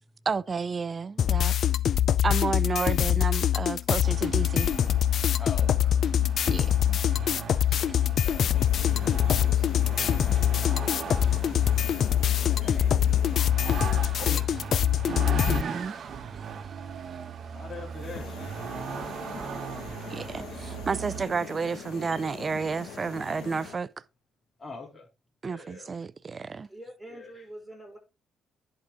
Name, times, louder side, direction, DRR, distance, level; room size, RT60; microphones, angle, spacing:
voice 1, 0.3-1.5 2.2-4.7 6.5-7.0 15.1-16.1 20.1-23.9 25.4-26.7, right 5 dB, 35° right, 0.4 m, -31 dB
sound 1, 1.2-15.6, left 10 dB, 65° left, 0.4 m, -24 dB
Vehicle, 4.0-21.3, right 7 dB, 60° right, 1.1 m, -38 dB
voice 2, 5.4-6.0 7.7-10.8 12.5-13.9 14.2-14.7 17.5-18.6 24.6-25.0 25.4-25.9 27.1-27.3, left 3 dB, 25° left, 3.1 m, -45 dB
sound 2, 8.4-13.4 17.9-23.8, left 7 dB, 90° left, 1.8 m, -43 dB
voice 3, 26.6-28.0, right 1 dB, ahead, 5.4 m, -47 dB
10.5 x 4.9 x 3.7 m
cardioid pair, 90°, 0 cm